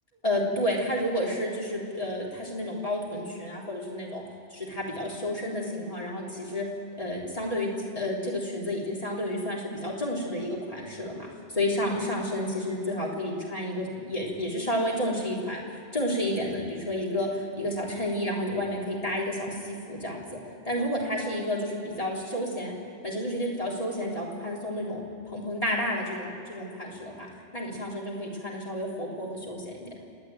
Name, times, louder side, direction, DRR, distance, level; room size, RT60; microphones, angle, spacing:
voice 1, 0.2-4.2 4.5-6.7 7.0-7.7 8.0-20.2 20.6-22.7 23.0-27.3 27.5-29.9, left 1 dB, 35° left, -3 dB, 3.8 m, -31 dB
29.0 x 10.0 x 9.2 m, 2.6 s
omnidirectional pair, 1.1 m